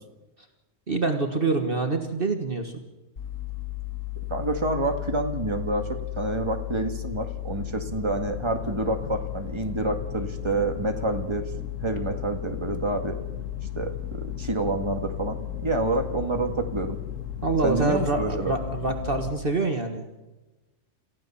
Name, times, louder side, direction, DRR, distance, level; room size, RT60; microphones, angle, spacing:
voice 1, 0.9-2.7 17.4-20.1, right 3 dB, 45° right, 4 dB, 1.7 m, -26 dB
sound 1, 3.2-19.3, left 12 dB, 75° left, 2.4 m, -34 dB
voice 2, 4.3-11.5 11.8-13.2 13.8-17.0 17.6-18.5, right 2 dB, 20° right, 5 dB, 1.9 m, -28 dB
28.5 x 15.0 x 7.0 m, 1.1 s
omnidirectional pair, 1.4 m